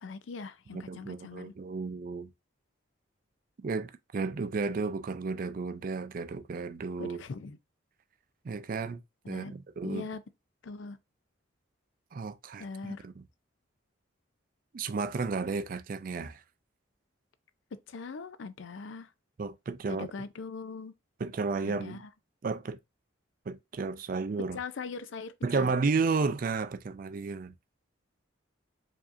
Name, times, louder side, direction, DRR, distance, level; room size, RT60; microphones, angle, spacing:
voice 1, 0.0-1.5 7.0-7.6 9.2-9.5 9.8-10.2 10.6-11.0 12.6-13.1 17.9-19.1 19.9-20.9 21.6-22.1 24.5-25.7, left 4 dB, 65° left, 0.4 m, -41 dB
voice 2, 0.7-2.3 3.6-7.2 8.4-9.0 9.3-10.0 12.1-13.2 14.7-16.4 19.4-20.1 21.2-22.1 22.4-22.8 23.5-24.6 25.4-27.5, right 4 dB, 45° right, 0.3 m, -33 dB
4.7 x 2.7 x 2.5 m
head